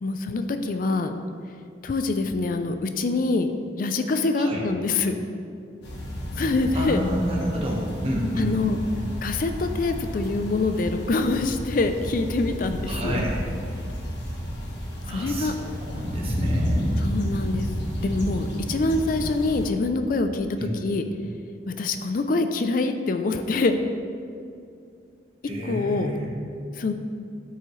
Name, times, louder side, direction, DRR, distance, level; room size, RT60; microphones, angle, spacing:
voice 1, 0.0-1.1 1.8-3.5 3.8-5.1 6.4-7.0 8.4-8.8 9.2-13.2 15.1-15.5 17.0-17.7 18.0-20.5 20.8-21.0 21.7-23.8 25.4-26.1 26.8-26.9, left 3 dB, 50° left, 8 dB, 0.4 m, -25 dB
sound 1, 5.8-19.7, equal, 70° left, 1.5 m, -31 dB
voice 2, 6.7-8.5 12.9-13.4 15.0-16.9 20.6-20.7 25.4-26.4, equal, 35° right, -2 dB, 1.3 m, -29 dB
12.5 x 5.6 x 3.1 m, 2.4 s
head